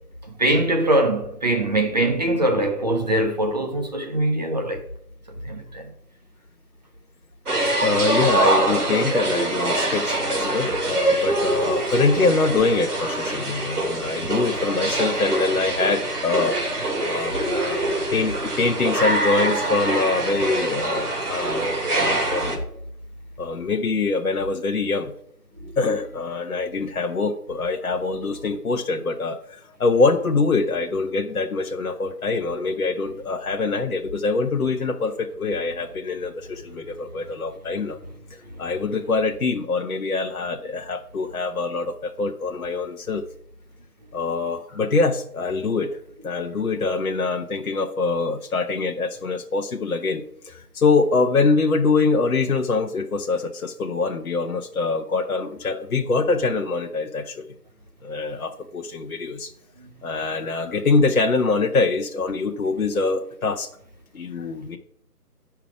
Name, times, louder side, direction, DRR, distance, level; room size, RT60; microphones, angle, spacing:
voice 1, 0.4-4.8 5.5-5.8 17.7-17.9 25.6-25.7 46.8-46.9, right 1 dB, 25° right, 1.0 m, -22 dB
sound 1, 7.5-22.6, right 2 dB, 70° right, 2.9 m, -24 dB
voice 2, 7.8-16.6 17.1-17.8 18.1-22.6 23.4-25.1 25.8-38.0 38.3-43.2 44.1-45.9 46.2-57.5 58.0-59.5 60.0-63.7 64.1-64.8, left 3 dB, 60° left, 0.9 m, -24 dB
10.0 x 5.8 x 4.8 m
figure-of-eight pair, 160°, 47 cm